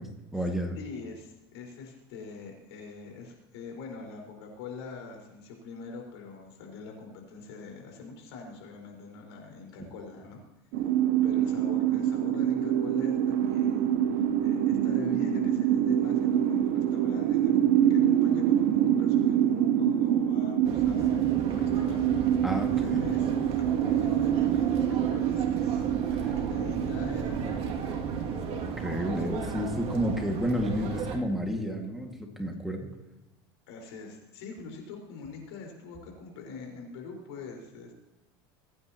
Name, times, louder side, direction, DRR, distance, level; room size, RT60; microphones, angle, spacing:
voice 1, 0.0-0.8 9.8-9.9 22.4-23.0 26.1-26.3 28.8-32.9, equal, ahead, 2 dB, 2.0 m, -31 dB
voice 2, 0.8-10.4 11.2-13.9 14.1-22.1 22.8-23.3 23.6-27.8 33.7-37.9, left 4 dB, 85° left, 0 dB, 4.7 m, -44 dB
sound 1, 10.7-30.3, right 10 dB, 65° right, 1.0 m, -26 dB
sound 2, 20.6-31.2, right 5 dB, 45° right, 2.4 m, -36 dB
23.0 x 9.7 x 3.0 m, 1.0 s
supercardioid pair, 115°, 14 cm